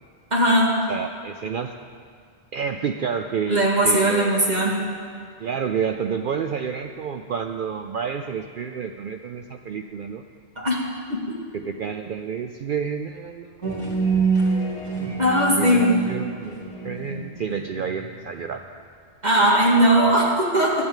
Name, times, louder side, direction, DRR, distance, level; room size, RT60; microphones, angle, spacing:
voice 1, 0.3-0.7 3.5-4.8 10.6-10.8 15.2-15.9 19.2-20.7, right 1 dB, 40° right, -3 dB, 2.1 m, -18 dB
voice 2, 0.9-1.7 2.5-4.5 5.4-10.2 11.5-14.3 15.6-18.6, right 6 dB, 60° right, 6 dB, 0.6 m, -29 dB
sound 1, 13.6-18.5, right 4 dB, 25° left, 2.3 m, -26 dB
12.5 x 8.7 x 7.3 m, 2.1 s
omnidirectional pair, 1.2 m